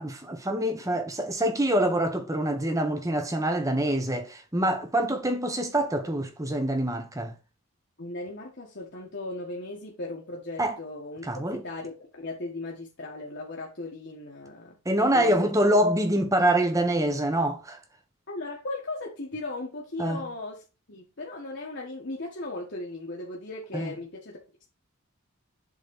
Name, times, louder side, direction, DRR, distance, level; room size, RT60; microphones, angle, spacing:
voice 1, 0.0-7.4 10.6-10.8 11.2-11.6 14.8-17.8 20.0-20.2 23.7-23.9, right 1 dB, 15° right, 1.2 m, -25 dB
voice 2, 8.0-14.8 15.1-15.5 18.3-20.6 20.9-24.4, left 2 dB, 55° left, 1.6 m, -37 dB
7.5 x 4.0 x 5.4 m
head